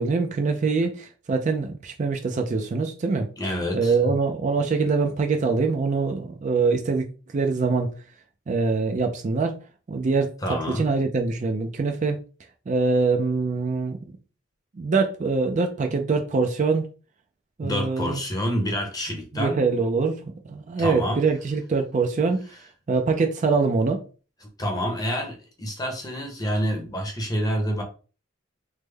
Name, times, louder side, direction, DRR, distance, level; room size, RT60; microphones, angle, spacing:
voice 1, 0.0-7.9 8.5-9.6 9.9-12.2 12.7-14.0 14.7-16.9 17.6-18.2 19.3-24.0, right 4 dB, 35° right, 0.3 m, -24 dB
voice 2, 3.4-3.9 10.4-10.9 17.6-19.6 20.8-21.2 24.6-27.8, equal, 20° left, 0.7 m, -27 dB
3.3 x 2.1 x 3.3 m
head